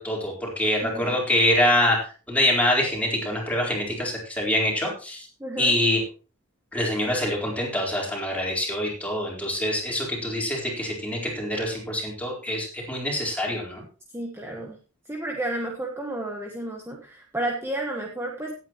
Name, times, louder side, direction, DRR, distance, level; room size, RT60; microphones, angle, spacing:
voice 1, 0.0-2.0 2.3-5.3 5.6-6.0 6.7-13.8, left 1 dB, 5° left, -3 dB, 4.2 m, -25 dB
voice 2, 0.8-1.2 5.4-5.7 14.1-14.7 15.1-18.5, right 1 dB, 10° right, 1 dB, 1.4 m, -31 dB
17.5 x 8.9 x 3.1 m, 0.36 s
head